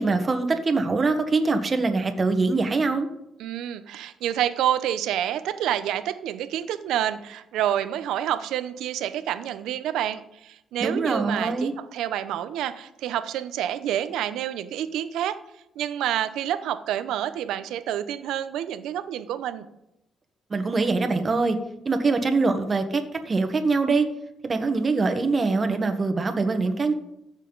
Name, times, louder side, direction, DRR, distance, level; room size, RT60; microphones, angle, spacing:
voice 1, 0.0-3.1 10.8-11.7 20.5-21.6 21.8-24.1 24.4-26.9, right 3 dB, 35° right, 7 dB, 1.3 m, -23 dB
voice 2, 3.4-15.4 15.8-19.6, right 11 dB, 85° right, 12 dB, 0.7 m, -28 dB
15.5 x 6.5 x 4.0 m, 0.84 s
cardioid pair, 90°, 0 cm